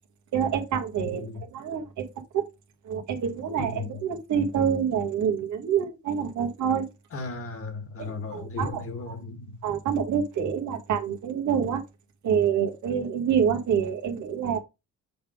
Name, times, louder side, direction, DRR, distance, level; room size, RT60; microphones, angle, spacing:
voice 1, 0.3-2.4 2.9-6.9 8.0-9.2 9.6-11.8 12.2-14.6, right 7 dB, 75° right, 1.7 m, -27 dB
voice 2, 1.0-1.4 3.6-4.0 7.1-9.6, left 3 dB, 50° left, 1.8 m, -36 dB
7.1 x 3.5 x 5.0 m
cardioid pair, 90°, 30 cm